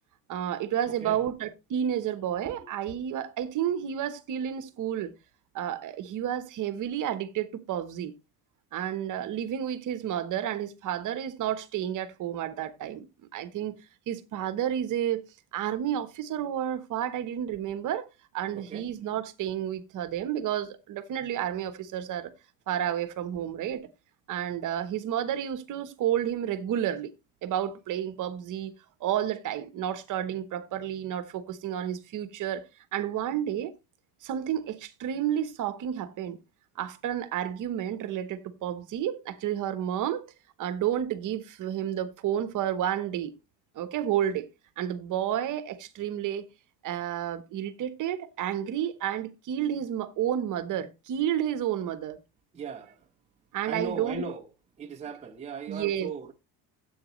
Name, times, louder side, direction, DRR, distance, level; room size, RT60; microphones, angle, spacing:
voice 1, 0.3-5.1 5.5-8.1 8.7-13.1 13.3-13.8 14.1-15.2 15.5-18.1 18.3-22.3 22.7-23.9 24.3-27.1 27.4-28.7 29.0-32.6 32.9-33.7 34.2-36.4 36.8-40.3 40.6-43.3 43.7-44.5 44.8-46.5 46.8-52.2 53.5-54.2 55.7-56.1, right 10 dB, 45° right, 1.1 m, -31 dB
voice 2, 18.5-18.9 52.5-53.0 53.6-54.5 54.8-56.3, right 4 dB, 15° right, 0.8 m, -37 dB
14.0 x 8.2 x 3.1 m
cardioid pair, 165°, 44 cm